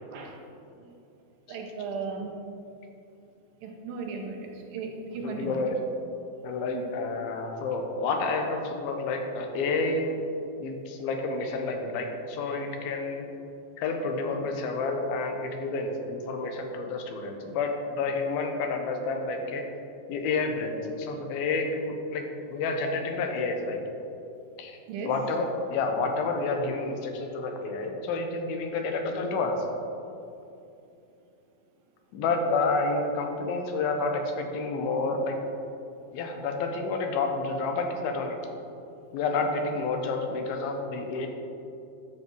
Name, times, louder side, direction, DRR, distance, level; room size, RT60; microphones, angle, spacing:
voice 1, 1.5-2.3 3.6-5.6 6.7-6.9 24.9-25.1, right 4 dB, 75° right, 1 dB, 2.7 m, -36 dB
voice 2, 5.2-5.8 6.4-10.2 10.6-13.3 13.8-19.6 20.1-22.2 22.5-23.8 24.6-24.8 25.1-29.6 32.1-35.4 36.1-38.4 39.1-41.3, left 3 dB, 90° left, 4 dB, 2.8 m, -29 dB
13.0 x 6.0 x 4.6 m, 2.7 s
omnidirectional pair, 4.2 m